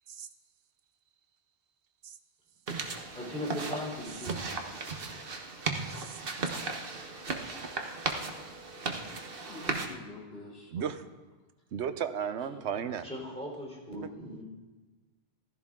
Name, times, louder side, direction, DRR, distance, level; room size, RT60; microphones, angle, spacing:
sound 1, 2.7-9.9, right 4 dB, 55° right, 1.3 m, -36 dB
voice 1, 3.1-4.3 13.0-14.4, left 1 dB, 5° left, -3 dB, 3.7 m, -38 dB
voice 2, 8.4-8.9 9.4-11.0 12.5-12.8, left 2 dB, 65° left, -4 dB, 3.5 m, -48 dB
voice 3, 10.7-11.0 11.7-13.1, right 8 dB, 80° right, 10 dB, 1.1 m, -34 dB
15.0 x 14.0 x 3.7 m, 1.3 s
omnidirectional pair, 1.1 m